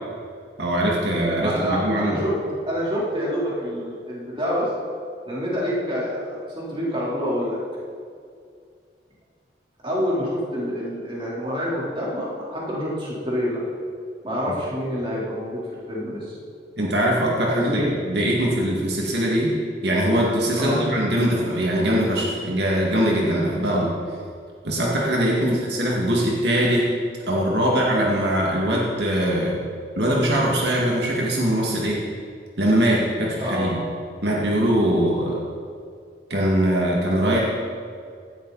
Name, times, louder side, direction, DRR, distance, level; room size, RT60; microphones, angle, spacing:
voice 1, 0.6-2.2 16.8-19.5 19.8-23.9 24.6-26.9 27.3-29.6 29.9-32.0 32.6-33.8 34.2-35.4 36.3-37.4, right 1 dB, 75° right, -3 dB, 2.2 m, -22 dB
voice 2, 1.4-2.4 2.7-4.7 5.2-7.6 9.8-13.6 14.2-15.6 15.9-16.3 17.5-17.9 20.5-20.8 25.4-25.6 33.4-33.7, equal, 30° right, -6 dB, 3.8 m, -27 dB
17.5 x 12.0 x 4.2 m, 2.3 s
head